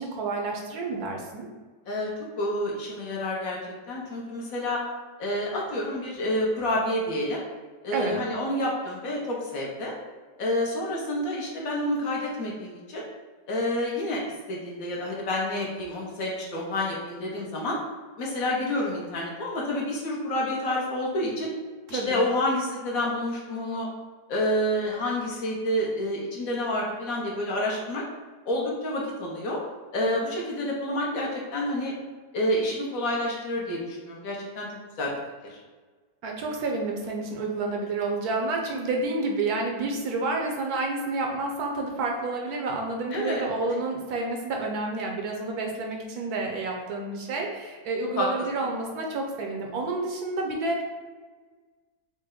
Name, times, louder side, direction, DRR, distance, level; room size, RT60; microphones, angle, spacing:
voice 1, 0.0-1.5 7.9-8.2 21.9-22.2 36.2-50.8, right 3 dB, 70° right, 1 dB, 1.0 m, -29 dB
voice 2, 1.9-3.6 3.9-4.8 5.2-7.4 7.8-9.9 10.4-13.0 13.5-14.2 14.5-17.8 18.2-21.5 21.9-23.9 24.3-28.0 28.5-29.6 29.9-31.9 32.3-34.7 35.0-35.1 35.4-35.6 43.1-43.4 48.1-48.3, left 1 dB, 65° left, -3 dB, 1.0 m, -28 dB
4.1 x 2.1 x 3.6 m, 1.4 s
omnidirectional pair, 1.8 m